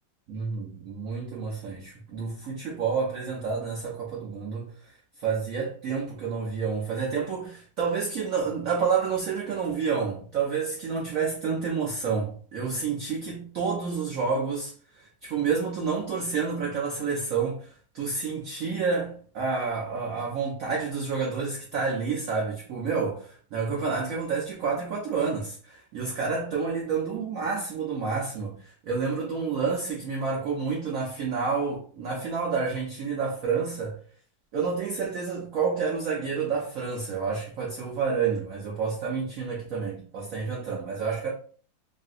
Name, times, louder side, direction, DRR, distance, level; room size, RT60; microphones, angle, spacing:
voice 1, 0.3-4.7 5.2-17.7 17.9-34.0 34.5-41.3, right 5 dB, 75° right, 0.7 m, -29 dB
3.2 x 2.6 x 2.5 m
omnidirectional pair, 2.2 m